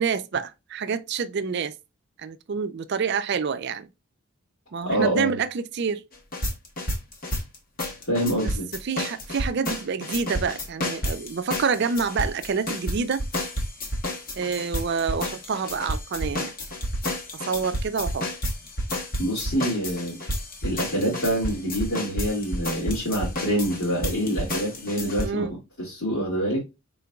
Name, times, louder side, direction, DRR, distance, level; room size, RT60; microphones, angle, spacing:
voice 1, 0.0-1.8 2.2-3.9 4.7-6.0 8.4-8.5 8.8-13.2 14.4-16.6 17.3-18.2 25.2-25.5, right 5 dB, 50° right, 0.4 m, -27 dB
voice 2, 4.8-5.3 8.1-8.7 19.2-20.2 20.6-25.5 25.8-26.6, equal, 70° left, 2.2 m, -26 dB
sound 1, 6.1-25.3, equal, 40° left, 1.0 m, -30 dB
5.0 x 3.7 x 2.3 m
head